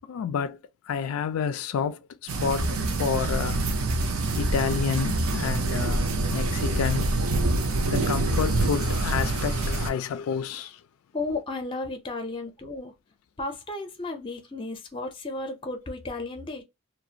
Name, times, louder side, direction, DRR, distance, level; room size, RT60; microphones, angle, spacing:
voice 1, 0.1-0.6 0.9-3.6 4.4-7.1 7.6-10.8, left 7 dB, 85° left, 0.3 m, -29 dB
sound 1, 2.3-9.9, right 2 dB, 80° right, 0.5 m, -26 dB
voice 2, 11.1-12.9 13.4-16.6, left 2 dB, 25° left, 0.5 m, -34 dB
2.4 x 2.1 x 2.7 m
head